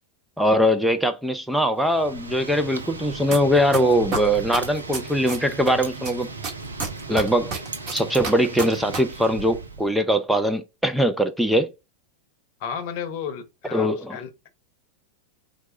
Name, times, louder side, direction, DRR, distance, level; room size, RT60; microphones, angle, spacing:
voice 1, 0.4-6.3 7.1-7.5 7.9-11.7 13.7-14.2, equal, ahead, 0.5 m, -21 dB
Wind, 1.7-9.9, right 3 dB, 75° right, 0.7 m, -36 dB
sound 1, 3.3-3.4 3.7-5.7 6.0-9.0 9.2-9.3, right 4 dB, 35° right, 1.6 m, -28 dB
voice 2, 12.6-14.5, left 7 dB, 45° left, 0.8 m, -33 dB
4.6 x 2.6 x 4.2 m
figure-of-eight pair, 90°, 0 cm